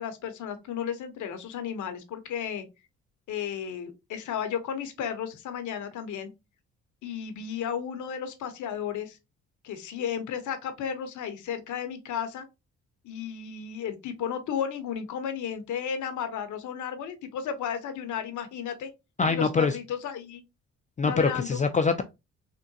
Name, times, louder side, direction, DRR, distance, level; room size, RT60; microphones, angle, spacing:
voice 1, 0.0-2.6 3.3-6.3 7.0-9.2 9.6-12.4 13.0-18.9 19.3-20.4 21.0-21.6, left 8 dB, 70° left, 0.8 m, -33 dB
voice 2, 19.2-19.7 21.0-22.0, left 4 dB, 25° left, 0.3 m, -24 dB
3.6 x 2.2 x 2.6 m
supercardioid pair, 70°, 31 cm